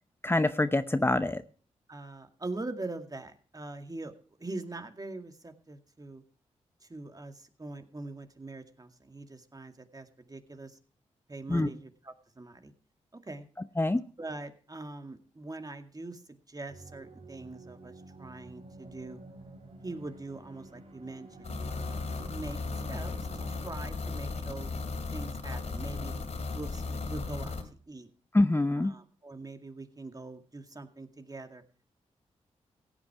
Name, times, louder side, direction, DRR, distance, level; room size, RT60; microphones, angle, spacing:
voice 1, 0.2-1.4 11.5-11.7 13.8-14.0 28.3-28.9, left 2 dB, 15° left, 11 dB, 0.8 m, -25 dB
voice 2, 1.9-4.1 4.4-6.2 6.8-10.8 11.3-12.7 13.2-13.5 14.2-19.2 19.8-22.0 22.3-22.6 22.9-24.7 25.1-26.1 26.5-28.1 28.8-31.6, right 2 dB, 30° right, 7 dB, 2.0 m, -43 dB
sound 1, 16.7-23.6, right 2 dB, 50° right, 3.0 m, -50 dB
sound 2, 21.4-27.6, left 3 dB, 55° left, 2.7 m, -36 dB
16.0 x 8.9 x 4.8 m, 0.41 s
supercardioid pair, 40°, 13 cm